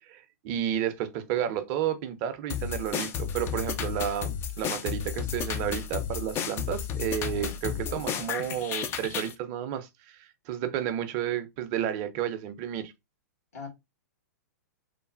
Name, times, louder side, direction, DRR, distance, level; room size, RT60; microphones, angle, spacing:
voice 1, 0.1-12.9, right 10 dB, 35° right, 0.5 m, -32 dB
sound 1, 2.5-9.3, left 8 dB, 25° left, 0.3 m, -33 dB
voice 2, 7.2-7.6 13.5-13.7, left 4 dB, 65° left, 1.6 m, -42 dB
3.1 x 2.0 x 2.4 m
figure-of-eight pair, 110°, 9 cm